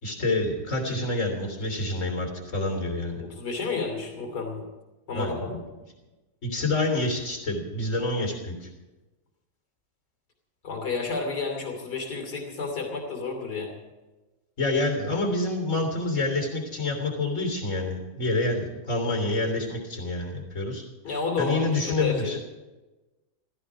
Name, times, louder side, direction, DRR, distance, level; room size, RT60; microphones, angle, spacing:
voice 1, 0.0-3.2 5.1-5.5 6.4-8.7 14.6-20.8 21.4-22.4, left 2 dB, 50° left, 3 dB, 3.6 m, -27 dB
voice 2, 3.2-4.7 5.1-5.6 10.6-13.7 21.0-22.4, left 4 dB, 80° left, 2 dB, 3.4 m, -31 dB
16.0 x 15.5 x 5.0 m, 1.1 s
omnidirectional pair, 1.7 m